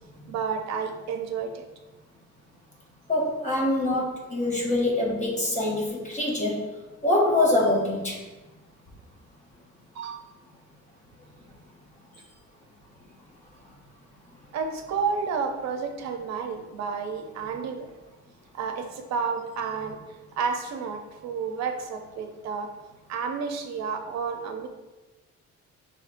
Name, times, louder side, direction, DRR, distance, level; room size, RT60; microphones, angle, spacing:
voice 1, 0.3-1.7 9.9-10.2 14.5-17.9 18.5-20.0 20.4-22.7 23.1-24.7, right 5 dB, 65° right, 5 dB, 0.6 m, -31 dB
voice 2, 3.1-6.6 7.0-8.2, left 2 dB, 25° left, -2 dB, 0.7 m, -24 dB
5.2 x 2.7 x 2.5 m, 1.1 s
cardioid pair, 155°, 29 cm